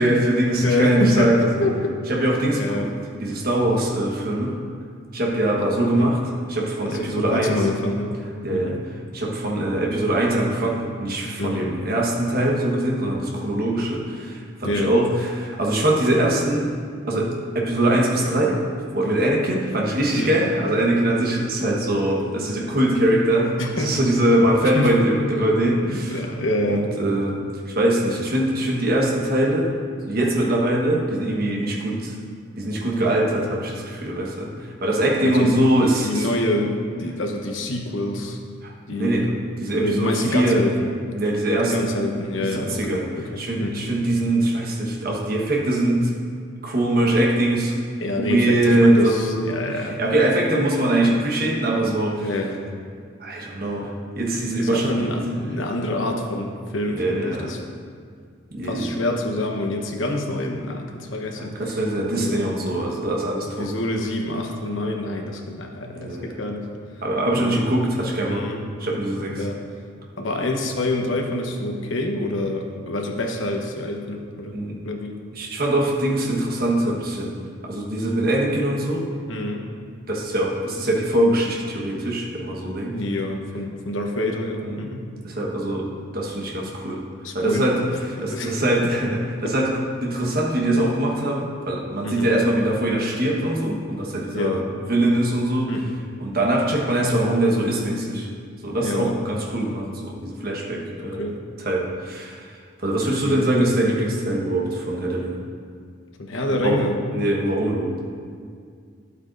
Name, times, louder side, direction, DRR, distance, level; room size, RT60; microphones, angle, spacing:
voice 1, 0.0-1.7 2.1-2.9 3.2-4.6 5.1-7.6 8.4-8.8 9.1-16.7 17.1-18.6 18.9-26.3 26.7-29.7 30.0-32.1 32.6-36.3 38.6-39.3 39.6-40.6 41.1-41.7 42.4-43.1 43.4-46.1 46.6-47.8 48.2-52.3 53.2-55.1 57.0-57.5 58.5-58.9 61.4-63.7 66.0-66.3 67.0-68.5 68.8-69.4 74.5-74.8 75.3-77.4 77.6-79.1 80.1-83.0 84.6-84.9 85.2-87.0 87.3-95.8 96.2-98.3 98.6-101.3 101.6-105.4 106.6-108.0, right 1 dB, 50° right, -2 dB, 1.4 m, -22 dB
voice 2, 0.6-2.0 2.6-3.0 6.0-6.2 6.9-8.2 8.5-8.8 11.4-11.7 14.6-15.0 20.1-20.5 23.6-23.9 24.7-24.9 25.8-26.9 35.2-35.5 36.0-38.4 38.9-40.8 41.6-43.0 43.3-43.9 48.0-50.0 52.2-52.6 54.6-57.6 58.6-61.7 62.1-62.4 63.6-66.7 67.3-67.6 68.3-68.7 69.4-69.6 70.2-75.2 79.3-79.7 82.9-85.0 87.2-87.7 88.1-88.7 92.0-92.3 94.3-94.6 95.7-96.0 98.8-99.2 101.0-101.4 103.2-103.5 106.2-106.9, left 1 dB, 75° left, 2 dB, 1.0 m, -27 dB
12.0 x 8.1 x 2.6 m, 2.1 s
head